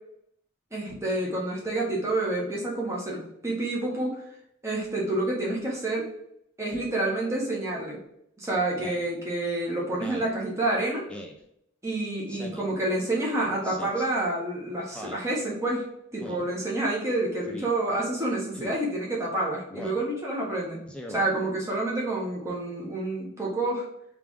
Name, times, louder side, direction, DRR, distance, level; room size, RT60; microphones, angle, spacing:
voice 1, 0.7-4.2 4.6-6.1 6.6-8.0 8.4-11.0 11.8-15.9 16.1-20.8 21.1-23.8, right 2 dB, 15° right, -4 dB, 1.2 m, -28 dB
Speech synthesizer, 8.8-9.1 9.9-10.3 11.1-11.4 12.3-12.7 13.6-14.1 14.9-15.3 16.2-16.5 17.4-17.7 18.5-18.8 19.7-20.0 20.9-21.3, equal, 5° left, 0.4 m, -40 dB
3.4 x 3.3 x 3.6 m, 0.76 s
head